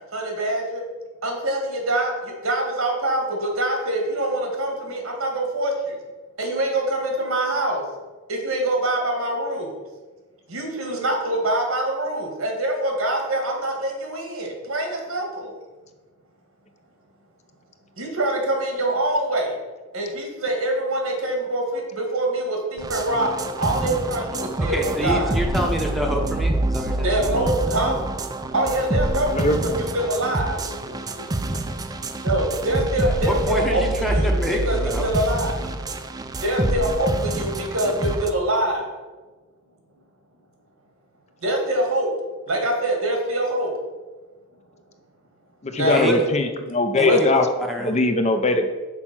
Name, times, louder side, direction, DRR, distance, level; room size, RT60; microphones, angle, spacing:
voice 1, 0.1-0.8 1.2-5.9 6.4-7.8 8.3-9.7 10.5-15.5 18.0-19.6 19.9-25.4 26.9-28.0 28.5-31.2 31.5-31.6 32.2-34.3 34.6-35.6 36.4-38.9 41.4-42.1 42.5-43.7 45.7-46.3 47.0-47.2, right 1 dB, 85° right, 2 dB, 1.8 m, -24 dB
sound 1, 22.8-38.3, right 2 dB, 20° right, 0.4 m, -26 dB
voice 2, 24.6-27.1 33.2-35.0 45.9-46.1 47.0-48.0, equal, ahead, 1 dB, 0.8 m, -27 dB
voice 3, 45.6-47.4 47.8-48.7, left 2 dB, 30° left, 7 dB, 0.5 m, -21 dB
6.1 x 4.5 x 6.0 m, 1.3 s
head